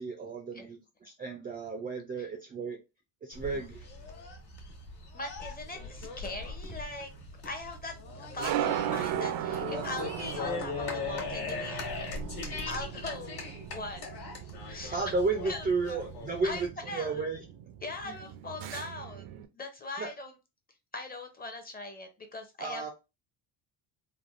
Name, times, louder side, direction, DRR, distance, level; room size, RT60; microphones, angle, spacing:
voice 1, 0.0-2.8 3.2-3.9 14.9-17.4 18.0-18.1 20.0-20.1 22.6-22.9, right 4 dB, 20° right, 4 dB, 0.3 m, -33 dB
sound 1, 3.3-16.7, left 4 dB, 50° left, 1.3 m, -40 dB
voice 2, 5.1-7.1 7.4-11.8 12.7-14.0 14.7-15.2 15.5-16.0 16.4-17.3 17.8-20.3 20.9-22.8, left 2 dB, 20° left, 5 dB, 0.6 m, -41 dB
sound 2, 5.4-19.5, right 11 dB, 75° right, 0.5 m, -38 dB
3.3 x 2.1 x 2.4 m, 0.26 s
cardioid pair, 115°, 47 cm